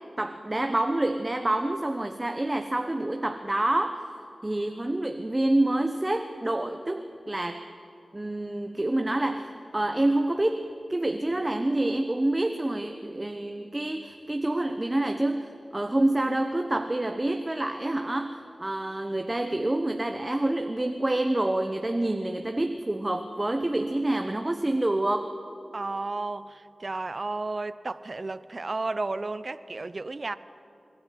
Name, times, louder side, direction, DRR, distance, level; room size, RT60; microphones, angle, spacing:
voice 1, 0.2-4.0 4.4-7.6 8.1-25.3, right 1 dB, 30° right, 1.1 m, -27 dB
voice 2, 25.7-30.4, right 3 dB, 50° right, 0.7 m, -33 dB
26.0 x 12.5 x 9.2 m
cardioid pair, 45°, 0 cm